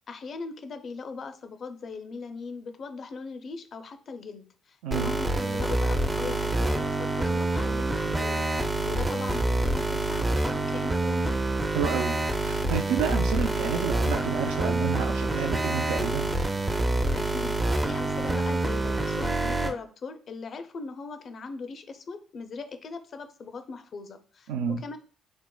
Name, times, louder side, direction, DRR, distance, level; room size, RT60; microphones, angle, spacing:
voice 1, 0.1-8.5 8.8-11.4 16.9-24.5 24.8-25.0, left 4 dB, 55° left, 8 dB, 0.4 m, -39 dB
voice 2, 4.8-5.2 11.7-16.3 24.5-24.8, right 7 dB, 90° right, 4 dB, 0.3 m, -30 dB
sound 1, 4.9-19.7, right 2 dB, 20° right, 0.4 m, -27 dB
4.4 x 2.1 x 2.2 m, 0.42 s
supercardioid pair, 70°, 0 cm